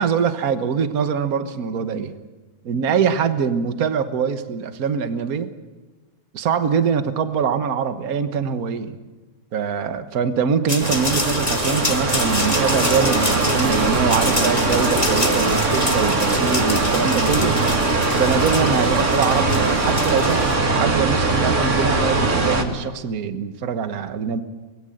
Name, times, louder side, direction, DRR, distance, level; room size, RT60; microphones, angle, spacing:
voice 1, 0.0-2.1 2.6-5.5 6.3-8.9 9.5-17.6 18.1-24.4, right 6 dB, 70° right, 9 dB, 0.8 m, -23 dB
sound 1, 10.7-20.6, left 2 dB, 15° left, 1.4 m, -28 dB
sound 2, 10.8-22.6, right 3 dB, 25° right, 2.1 m, -21 dB
25.0 x 20.5 x 7.8 m, 1.2 s
omnidirectional pair, 3.5 m